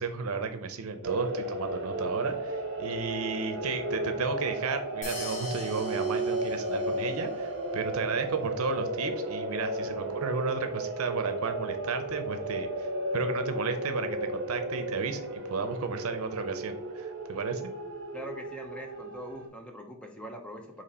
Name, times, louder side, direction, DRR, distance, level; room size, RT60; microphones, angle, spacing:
voice 1, 0.0-12.9 13.1-17.7, right 4 dB, 80° right, 8 dB, 0.6 m, -33 dB
sound 1, 1.0-19.5, right 1 dB, 50° right, 0.8 m, -34 dB
sound 2, 5.0-7.3, left 3 dB, 35° left, 1.1 m, -43 dB
voice 2, 18.1-20.8, equal, 5° left, 2 dB, 0.6 m, -42 dB
4.2 x 3.0 x 4.2 m, 0.66 s
head